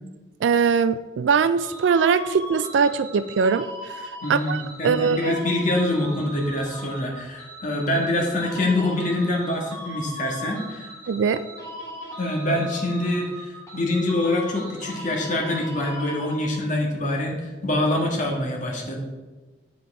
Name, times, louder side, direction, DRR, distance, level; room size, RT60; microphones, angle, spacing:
voice 1, 0.4-3.7 4.3-5.3 11.1-11.4, right 6 dB, 85° right, 12 dB, 0.3 m, -21 dB
sound 1, 1.6-16.8, equal, 15° left, 2.7 m, -39 dB
voice 2, 4.2-10.9 12.2-19.0, left 1 dB, 45° left, 0 dB, 1.6 m, -25 dB
8.1 x 5.8 x 4.8 m, 1.3 s
head